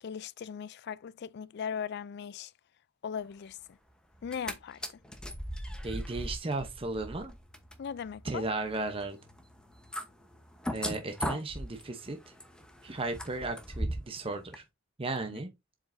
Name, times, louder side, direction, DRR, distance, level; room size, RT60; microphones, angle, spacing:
voice 1, 0.0-2.5 3.0-3.6 4.2-4.8 7.8-8.4, left 7 dB, 55° left, 0.3 m, -38 dB
sound 1, 4.1-4.5 4.8-14.2 14.5-14.6, equal, 5° left, 0.9 m, -39 dB
voice 2, 5.8-7.3 8.2-9.2 10.7-12.2 12.8-14.6 15.0-15.5, right 2 dB, 30° right, 0.8 m, -35 dB
7.4 x 4.9 x 2.6 m
head